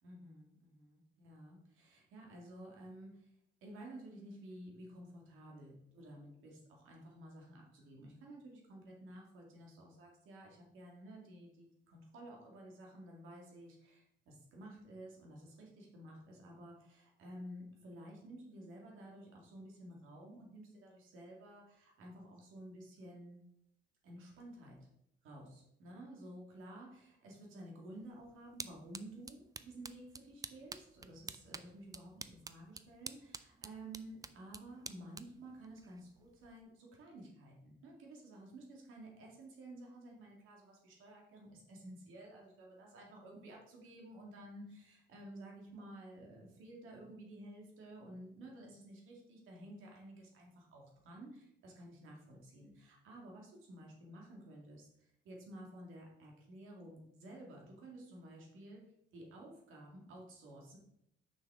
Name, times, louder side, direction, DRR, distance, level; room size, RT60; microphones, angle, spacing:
voice 1, 0.0-3.3 3.6-23.4 24.0-24.9 25.2-58.8 59.1-60.8, right 1 dB, 85° right, -1 dB, 2.0 m, -53 dB
sound 1, 27.9-36.6, right 4 dB, 20° right, 0.4 m, -51 dB
6.2 x 5.6 x 3.6 m, 0.76 s
cardioid pair, 90°, 20 cm